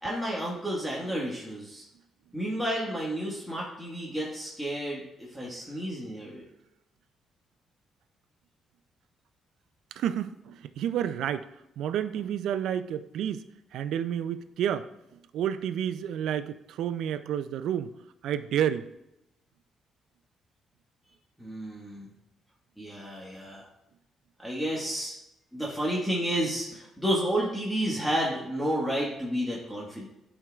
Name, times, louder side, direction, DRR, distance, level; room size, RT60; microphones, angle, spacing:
voice 1, 0.0-1.8 2.3-6.4 21.4-22.1 22.8-23.7 24.4-25.1 25.5-30.1, equal, ahead, -5 dB, 1.5 m, -31 dB
voice 2, 9.9-11.5 11.8-13.4 13.7-14.9 15.3-17.9 18.2-18.9, right 9 dB, 80° right, 11 dB, 0.4 m, -30 dB
11.5 x 4.5 x 2.4 m, 0.86 s
cardioid pair, 90°, 0 cm